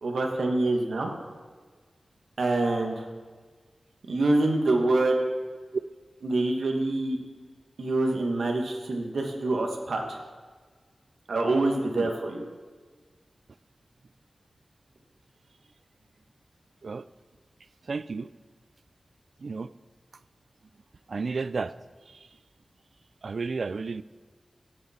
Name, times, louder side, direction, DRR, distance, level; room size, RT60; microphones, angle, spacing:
voice 1, 0.0-1.1 2.4-3.0 4.1-5.2 6.2-7.2 7.8-10.2 11.3-12.4, right 2 dB, 90° right, 2 dB, 1.4 m, -26 dB
voice 2, 17.9-18.3 19.4-19.7 21.1-21.7 22.1-22.3 23.2-24.0, right 4 dB, 70° right, 16 dB, 0.3 m, -32 dB
16.5 x 6.7 x 4.3 m, 1.5 s
wide cardioid pair, 70°, 0 cm